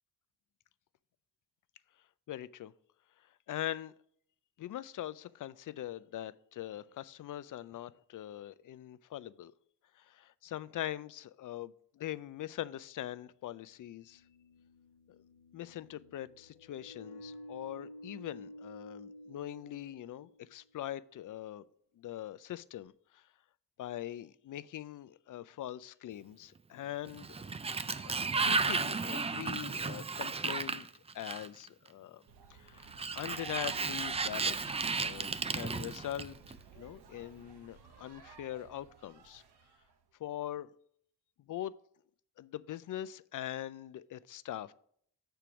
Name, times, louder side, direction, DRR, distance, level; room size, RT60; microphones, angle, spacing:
voice 1, 2.3-2.7 3.5-3.9 4.6-9.5 10.0-14.2 15.5-21.6 22.0-23.2 23.8-27.3 28.0-30.9 31.1-32.2 32.5-39.4 40.2-40.7 41.5-41.7 42.4-44.7, left 12 dB, 55° left, 0.4 m, -42 dB
sound 1, 13.7-20.6, left 1 dB, 80° left, 0.9 m, -52 dB
Sliding door, 27.1-31.7 32.8-36.5, right 4 dB, 15° right, 0.3 m, -34 dB
sound 2, 32.3-39.9, right 6 dB, 80° right, 0.9 m, -53 dB
6.8 x 4.5 x 6.0 m
cardioid pair, 80°, 39 cm